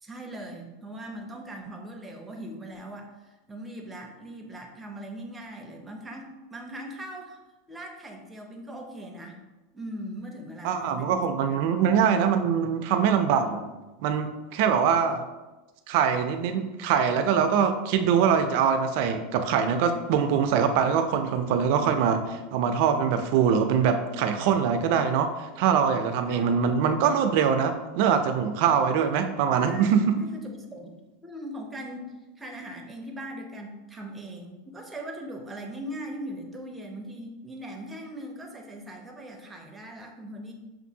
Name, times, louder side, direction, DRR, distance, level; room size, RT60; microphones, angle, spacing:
voice 1, 0.0-7.4 7.7-9.4 9.7-11.3 26.3-26.5 29.7-30.9 31.2-32.0 32.4-40.5, right 1 dB, 10° right, 1 dB, 0.6 m, -40 dB
voice 2, 10.6-13.7 14.0-15.2 15.9-30.2, right 7 dB, 60° right, 7 dB, 0.4 m, -23 dB
5.9 x 2.5 x 2.7 m, 1.1 s
supercardioid pair, 140°, 0 cm